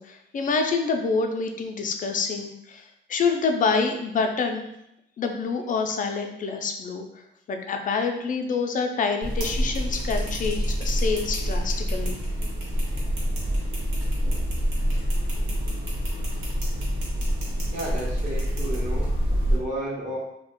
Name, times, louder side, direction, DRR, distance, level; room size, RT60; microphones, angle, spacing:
voice 1, 0.0-4.7 5.2-7.1 7.5-12.2, left 4 dB, 40° left, 4 dB, 0.4 m, -27 dB
sound 1, 9.2-19.6, equal, 80° right, 1.1 m, -26 dB
voice 2, 17.7-19.1 19.5-20.2, right 1 dB, 40° right, -6 dB, 0.9 m, -32 dB
2.4 x 2.1 x 3.5 m, 0.79 s
cardioid pair, 90°, 20 cm